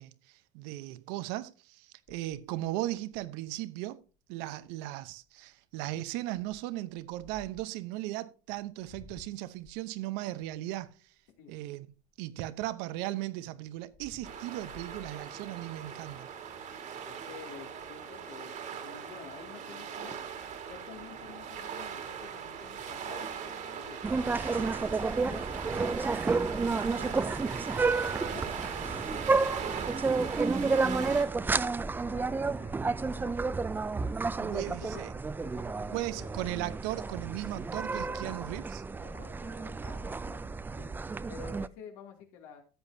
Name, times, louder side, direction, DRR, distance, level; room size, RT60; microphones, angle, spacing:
voice 1, 0.0-4.0 4.3-10.9 11.5-11.9 12.2-16.3 34.4-35.1 35.9-38.8, right 16 dB, 70° right, 0.9 m, -37 dB
sound 1, 2.1-3.5 4.1-4.2 4.4-4.7 5.2-5.5 6.3-7.8 8.5-12.4 12.9-15.9 16.4-16.6 16.9-17.0 17.3-18.0 19.7-19.8 20.1-20.4 20.8-21.7, left 3 dB, 25° left, 1.3 m, -57 dB
sound 2, 14.2-31.2, right 7 dB, 45° right, 2.0 m, -40 dB
voice 2, 17.1-20.2 20.7-24.0 24.5-29.9 30.7-33.5 34.4-35.0 35.4-36.3 38.0-38.5 38.9-40.9 41.3-42.6, left 7 dB, 75° left, 2.7 m, -51 dB
sound 3, 24.0-41.7, right 4 dB, 10° right, 0.3 m, -31 dB
13.5 x 8.1 x 2.8 m
supercardioid pair, 110°, 18 cm